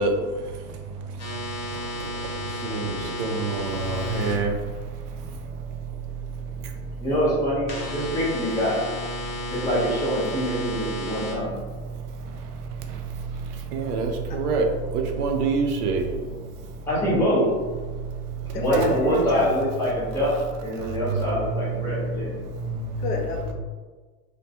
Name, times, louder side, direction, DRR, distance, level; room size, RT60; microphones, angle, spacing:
voice 1, 0.0-7.1 9.2-9.5 11.8-16.9 17.9-18.6 20.8-23.0, right 3 dB, 80° right, 3 dB, 0.6 m, -29 dB
sound 1, 1.2-4.3 7.7-11.3, left 1 dB, 35° left, 0.9 m, -33 dB
voice 2, 2.6-3.2 7.0-8.8 9.5-11.5 16.9-17.5 18.5-22.4, equal, 5° left, -9 dB, 0.8 m, -25 dB
voice 3, 18.5-19.5 23.0-23.5, left 2 dB, 80° left, 2 dB, 0.7 m, -31 dB
2.2 x 2.1 x 2.7 m, 1.4 s
supercardioid pair, 130°, 46 cm